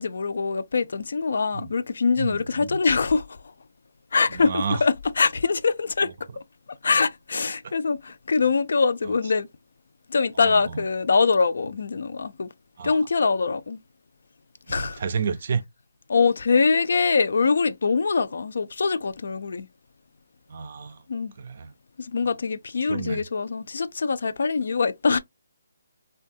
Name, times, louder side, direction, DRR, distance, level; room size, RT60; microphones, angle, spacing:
voice 1, 0.0-3.3 4.1-6.1 6.8-9.5 10.1-12.5 12.8-13.8 14.7-15.0 16.1-19.7 21.1-21.3 22.0-25.2, left 4 dB, 60° left, 0.4 m, -23 dB
voice 2, 2.2-2.8 4.3-4.8 7.6-7.7 9.1-9.2 10.4-10.8 12.8-13.0 14.7-15.6 20.5-21.0 21.4-21.7 22.9-23.2, right 5 dB, 40° right, 0.4 m, -31 dB
3.4 x 2.3 x 2.6 m
hypercardioid pair, 175°, 0 cm